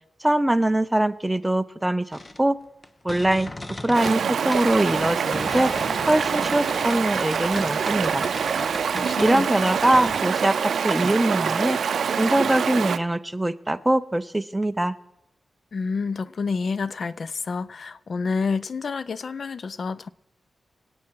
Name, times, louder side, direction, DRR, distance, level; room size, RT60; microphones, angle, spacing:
voice 1, 0.2-2.6 3.0-3.5 3.8-5.7 6.1-8.3 9.2-10.6 10.8-11.8 12.2-14.9, right 1 dB, 10° right, 0.5 m, -22 dB
sound 1, 2.1-4.2 4.5-10.2, left 2 dB, 25° left, 0.8 m, -37 dB
Stream, 3.9-13.0, right 7 dB, 85° right, 0.5 m, -25 dB
voice 2, 8.9-9.6 15.7-20.1, left 4 dB, 55° left, 0.4 m, -29 dB
25.5 x 8.6 x 4.6 m
wide cardioid pair, 125°, 0 cm